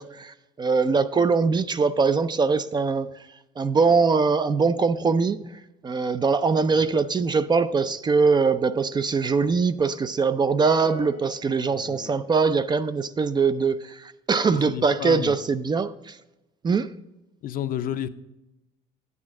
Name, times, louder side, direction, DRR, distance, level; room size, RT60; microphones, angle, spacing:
voice 1, 0.0-3.1 3.6-16.2 16.6-16.9, right 4 dB, 25° right, 0.4 m, -22 dB
sound 1, 10.6-12.3, left 10 dB, 80° left, 1.1 m, -42 dB
voice 2, 11.7-12.2 14.5-15.3 17.4-18.1, left 10 dB, 60° left, 0.6 m, -32 dB
8.7 x 8.4 x 3.6 m
cardioid pair, 110°, 17 cm